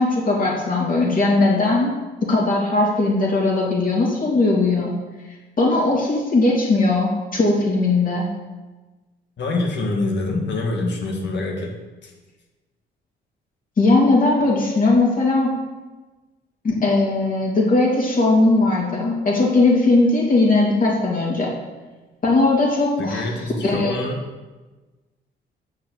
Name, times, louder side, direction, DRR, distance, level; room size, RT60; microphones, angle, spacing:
voice 1, 0.0-1.9 2.3-4.9 5.6-8.3 13.8-15.5 16.6-21.5 22.2-23.3 23.6-24.0, left 2 dB, 45° left, -3 dB, 3.1 m, -18 dB
voice 2, 9.4-11.7 12.0-12.1 23.0-24.2, left 2 dB, 65° left, 0 dB, 2.0 m, -25 dB
7.1 x 5.6 x 7.4 m, 1.2 s
cardioid pair, 90°, 20 cm